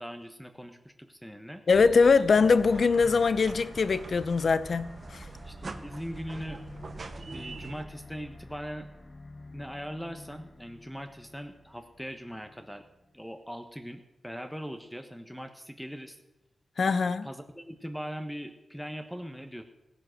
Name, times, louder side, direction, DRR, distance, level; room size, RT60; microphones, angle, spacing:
voice 1, 0.0-1.6 5.4-6.6 7.0-8.9 9.5-12.8 13.1-16.2 17.2-19.6, equal, ahead, 1.0 m, -40 dB
voice 2, 1.7-5.3 16.8-17.3, left 4 dB, 60° left, 0.7 m, -23 dB
sound 1, 1.7-7.8, right 3 dB, 45° right, 1.0 m, -44 dB
sound 2, 2.4-13.4, left 2 dB, 35° left, 1.6 m, -50 dB
16.0 x 9.5 x 6.4 m
wide cardioid pair, 120°, 0 cm